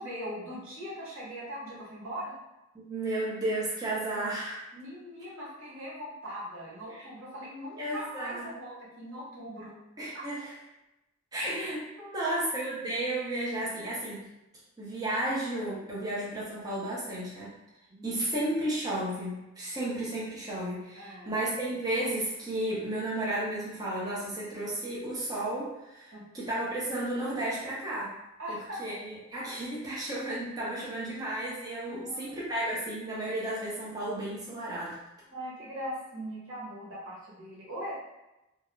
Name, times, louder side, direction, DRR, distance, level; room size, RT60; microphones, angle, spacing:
voice 1, 0.0-2.3 4.7-9.7 10.1-10.2 12.0-12.4 17.9-18.3 20.9-21.3 26.1-26.2 28.4-28.8 31.9-32.4 35.3-37.9, equal, 90° right, -6 dB, 1.0 m, -40 dB
voice 2, 2.7-4.6 7.8-8.5 10.0-10.6 11.3-11.9 12.1-14.3 14.8-17.6 18.0-28.2 28.5-35.0, right 1 dB, 20° right, -7 dB, 0.5 m, -33 dB
2.3 x 2.0 x 3.0 m, 0.95 s
head